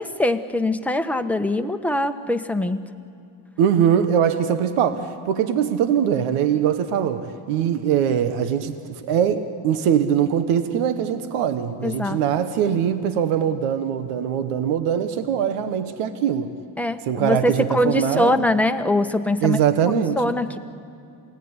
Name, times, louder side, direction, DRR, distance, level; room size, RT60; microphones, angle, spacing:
voice 1, 0.0-2.8 11.8-12.2 16.8-19.6 20.2-20.6, left 1 dB, 5° left, 6 dB, 1.1 m, -22 dB
voice 2, 3.6-16.5 17.1-18.4 19.4-20.3, right 8 dB, 85° right, 10 dB, 1.3 m, -22 dB
28.0 x 17.5 x 9.7 m, 2.5 s
cardioid pair, 90°, 50 cm